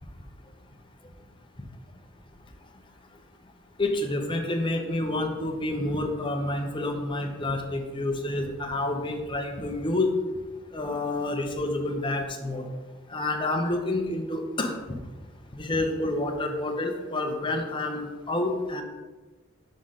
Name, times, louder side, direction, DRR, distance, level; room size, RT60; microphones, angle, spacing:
voice 1, 3.8-10.1 10.7-12.7 13.1-15.0 15.5-18.8, left 2 dB, 25° left, 3 dB, 0.8 m, -28 dB
6.3 x 3.9 x 5.7 m, 1.2 s
head